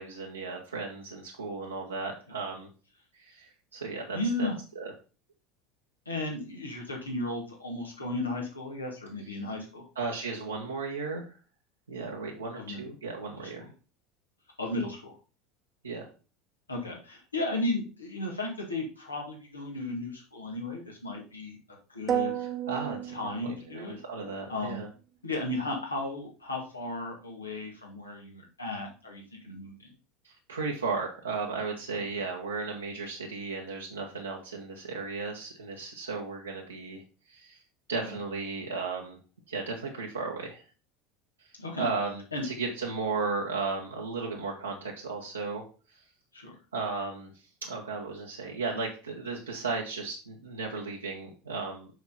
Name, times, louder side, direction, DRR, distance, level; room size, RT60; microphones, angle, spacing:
voice 1, 0.0-2.7 3.1-4.5 4.7-4.9 9.9-11.4 11.9-13.7 15.8-16.1 22.4-23.1 23.4-24.9 30.2-37.0 37.3-37.6 37.9-39.2 39.5-40.6 41.4-45.6 45.9-46.0 46.7-47.3 47.6-51.9, right 4 dB, 85° right, -2 dB, 1.2 m, -35 dB
voice 2, 4.1-4.6 6.1-9.8 12.6-12.8 13.4-13.7 14.6-15.2 16.7-22.3 23.1-24.0 24.5-24.8 25.2-29.9 38.0-38.2 41.6-41.9 42.3-42.4 46.3-46.6, left 2 dB, 85° left, 0 dB, 2.1 m, -35 dB
sound 1, 22.1-24.1, right 10 dB, 35° right, 0.9 m, -32 dB
6.4 x 5.8 x 4.2 m, 0.35 s
figure-of-eight pair, 75°, 0 cm